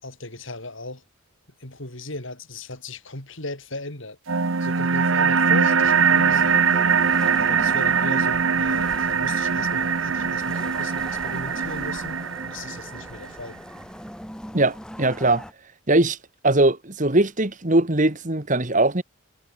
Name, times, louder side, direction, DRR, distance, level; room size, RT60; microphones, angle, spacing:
voice 1, 0.0-1.0 1.6-4.2 4.6-13.6, left 2 dB, 60° left, 4.5 m, -37 dB
sound 1, 4.3-13.3, right 6 dB, 65° right, 0.9 m, -22 dB
sound 2, 5.8-15.5, equal, 5° left, 2.7 m, -41 dB
voice 2, 14.5-15.4 15.9-16.2 16.4-19.0, right 2 dB, 35° right, 1.8 m, -20 dB
head